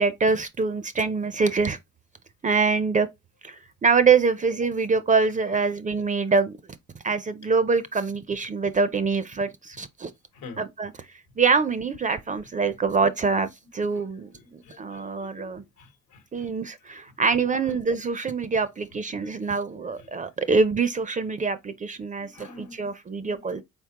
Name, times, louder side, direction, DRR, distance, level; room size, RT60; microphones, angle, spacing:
voice 1, 0.0-1.8 2.4-3.1 3.4-6.6 7.0-10.1 10.6-10.9 11.4-14.3 14.8-15.6 16.3-23.6, right 4 dB, 25° right, 0.4 m, -24 dB
voice 2, 14.4-15.5 15.8-16.5 17.4-17.6 19.4-19.5 20.0-20.1 22.2-22.9 23.2-23.6, left 4 dB, 80° left, 1.1 m, -46 dB
4.1 x 3.6 x 2.8 m
cardioid pair, 90°, 30 cm